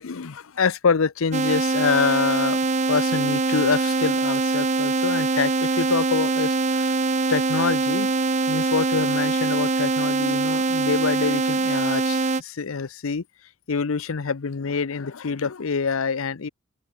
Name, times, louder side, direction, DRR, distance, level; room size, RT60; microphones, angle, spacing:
voice 1, 0.0-2.6 2.9-6.9 7.3-8.1 8.5-13.2 13.7-16.5, left 5 dB, 85° left, 0.7 m, -26 dB
sound 1, 1.3-12.4, right 3 dB, 35° right, 0.6 m, -23 dB
open air
head